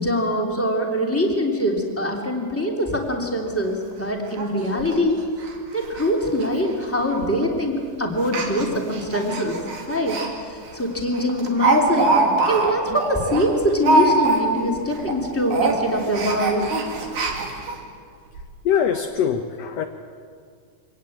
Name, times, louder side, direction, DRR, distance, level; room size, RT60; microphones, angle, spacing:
voice 1, 0.0-5.2 5.7-9.6 9.9-12.2 12.5-16.7, equal, 5° left, 0 dB, 2.8 m, -23 dB
Speech, 3.5-3.6 3.9-4.0 4.4-4.5 4.8-4.9 5.4-5.5 5.8-6.1 6.3-6.5 7.2-7.5 8.2-10.3 10.7-10.8 11.1-14.7 15.0-15.2 15.5-17.8 18.3-18.4 18.7-18.8, right 2 dB, 70° right, 3.9 m, -23 dB
voice 2, 18.7-19.9, left 8 dB, 65° left, 6 dB, 1.9 m, -22 dB
25.0 x 18.5 x 8.8 m, 2.1 s
omnidirectional pair, 3.6 m